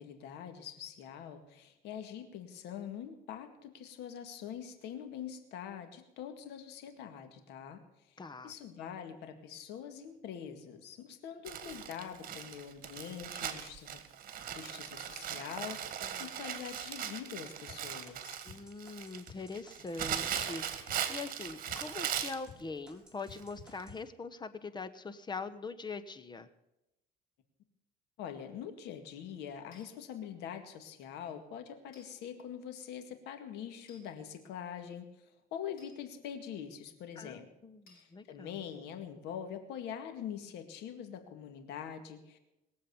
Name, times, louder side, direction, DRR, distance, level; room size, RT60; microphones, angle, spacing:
voice 1, 0.0-7.8 8.4-14.0 14.6-18.4 28.2-35.0 35.5-37.5 37.9-42.4, left 8 dB, 85° left, 7 dB, 2.1 m, -44 dB
voice 2, 8.2-8.5 16.0-16.3 18.4-26.5 37.2-38.6, left 4 dB, 25° left, 13 dB, 1.0 m, -43 dB
Crumpling crinkling, 11.5-22.5 23.3-23.4 23.8-23.9, right 9 dB, 55° right, 1.9 m, -39 dB
sound 1, 17.7-22.6 22.9-24.0, left 3 dB, 5° right, 5.5 m, -53 dB
sound 2, 29.7-29.9 31.9-32.1 33.9-34.1 35.8-36.0 37.9-38.1, left 3 dB, 60° left, 5.9 m, -60 dB
21.5 x 7.7 x 7.1 m, 0.91 s
cardioid pair, 110°, 17 cm